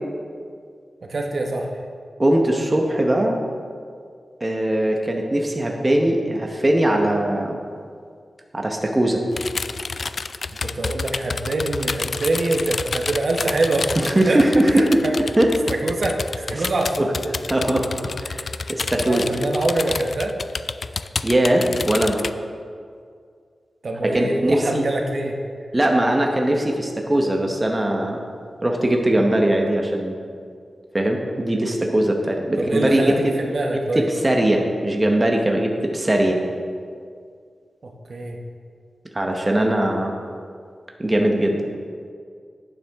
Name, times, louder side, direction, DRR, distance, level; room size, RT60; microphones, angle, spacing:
voice 1, 1.1-1.7 10.6-15.1 15.8-17.1 18.6-18.7 19.0-20.3 23.8-25.4 32.6-34.1 37.8-38.4, right 2 dB, 55° right, 2 dB, 1.0 m, -24 dB
voice 2, 2.2-3.4 4.4-7.6 8.5-9.2 14.0-15.0 15.4-15.5 17.0-17.9 18.2-19.3 21.2-22.2 24.0-24.9 25.7-28.2 28.6-30.1 30.9-33.3 33.9-36.4 39.1-40.1 41.0-41.6, right 1 dB, 20° right, 1 dB, 1.0 m, -20 dB
sound 1, 9.3-22.3, left 4 dB, 55° left, 0.3 m, -29 dB
11.5 x 9.2 x 3.6 m, 2.1 s
wide cardioid pair, 125°, 0 cm